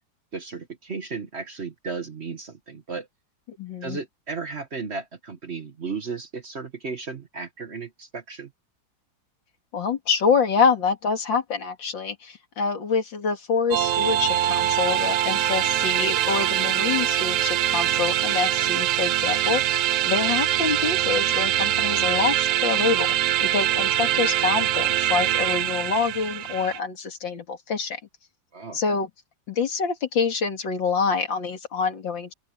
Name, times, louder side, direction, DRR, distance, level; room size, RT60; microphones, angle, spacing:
voice 1, 0.3-3.1 3.8-8.5 28.5-28.8, right 4 dB, 40° right, 1.5 m, -34 dB
voice 2, 3.6-4.0 9.7-23.1 23.4-28.0 28.7-29.1 29.5-32.3, left 5 dB, 80° left, 3.0 m, -26 dB
sound 1, 13.7-26.8, right 12 dB, 75° right, 0.7 m, -23 dB
open air
omnidirectional pair, 2.0 m